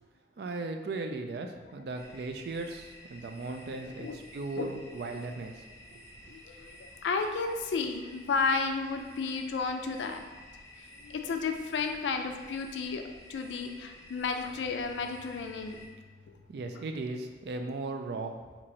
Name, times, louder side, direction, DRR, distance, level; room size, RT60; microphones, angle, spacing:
voice 1, 0.4-5.6 5.9-6.0 16.5-18.4, right 3 dB, 60° right, 5 dB, 0.3 m, -37 dB
sound 1, 1.9-15.9, left 1 dB, 15° left, 0.4 m, -52 dB
voice 2, 3.8-4.2 4.6-4.7 6.3-10.3 11.0-13.0 13.3-15.8 16.3-16.4, left 4 dB, 85° left, 6 dB, 0.4 m, -32 dB
2.9 x 2.6 x 4.1 m, 1.4 s
head